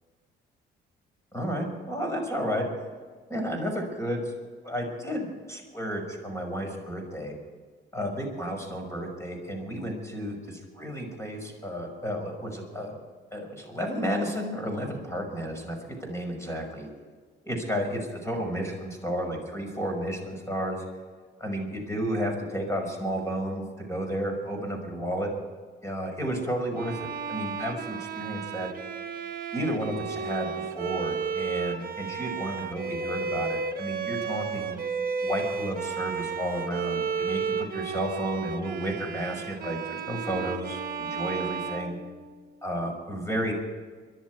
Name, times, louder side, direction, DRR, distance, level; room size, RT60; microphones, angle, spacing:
voice 1, 1.3-2.7 3.3-4.3 4.6-7.4 7.9-13.0 13.3-16.9 17.4-20.8 21.4-25.3 25.8-28.7 29.5-34.8 35.2-42.0 42.6-43.5, equal, 15° left, 2 dB, 5.8 m, -32 dB
Bowed string instrument, 26.8-42.6, right 6 dB, 50° right, 1.2 m, -33 dB
23.5 x 11.5 x 4.7 m, 1.5 s
cardioid pair, 90°, 20 cm